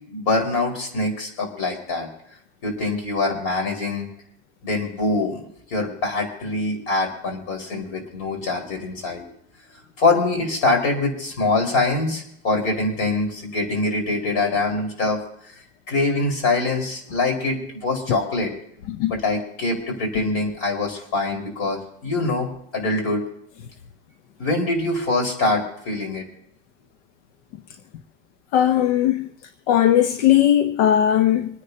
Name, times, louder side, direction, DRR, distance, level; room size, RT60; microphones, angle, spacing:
voice 1, 0.1-2.1 2.6-4.1 4.6-5.4 5.7-9.2 10.0-15.2 15.5-15.6 15.9-18.5 19.1-23.2 24.4-26.2, left 2 dB, 60° left, 4.8 m, -24 dB
voice 2, 28.5-29.3 29.7-31.5, left 11 dB, 85° left, 0.9 m, -18 dB
26.5 x 10.0 x 2.8 m
supercardioid pair, 150°, 35 cm